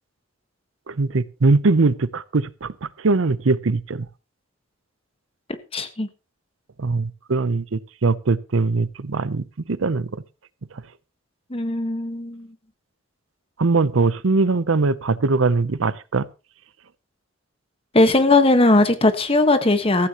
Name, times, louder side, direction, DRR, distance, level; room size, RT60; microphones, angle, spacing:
voice 1, 0.9-4.1 6.8-10.2 13.6-16.3, right 3 dB, 80° right, 0.7 m, -21 dB
voice 2, 5.7-6.1 11.5-12.5 17.9-20.1, left 2 dB, 30° left, 1.4 m, -18 dB
16.0 x 14.5 x 3.0 m
head